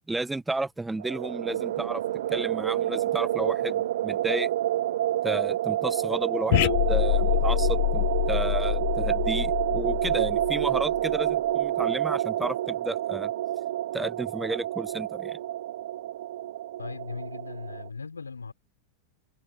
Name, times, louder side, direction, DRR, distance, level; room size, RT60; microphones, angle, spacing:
voice 1, 0.1-2.0 2.3-4.5 5.2-13.3 13.9-15.4, right 2 dB, 5° right, 1.5 m, -32 dB
sound 1, 1.0-17.9, right 13 dB, 60° right, 0.4 m, -28 dB
sound 2, 6.5-11.1, left 22 dB, 50° left, 0.9 m, -26 dB
voice 2, 16.8-18.5, left 4 dB, 75° left, 5.1 m, -38 dB
open air
figure-of-eight pair, 90°, 0 cm